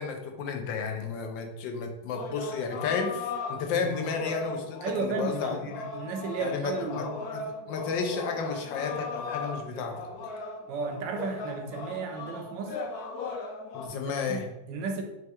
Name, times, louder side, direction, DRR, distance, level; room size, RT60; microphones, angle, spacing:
voice 1, 0.0-5.8 6.4-7.1 7.3-10.1 13.7-14.5, left 5 dB, 90° left, 3 dB, 1.3 m, -32 dB
sound 1, 2.1-13.9, left 4 dB, 70° left, 0.9 m, -38 dB
voice 2, 4.8-7.1 10.7-12.8 14.2-15.0, right 4 dB, 80° right, 5 dB, 1.2 m, -34 dB
5.5 x 2.2 x 2.9 m, 0.93 s
omnidirectional pair, 2.0 m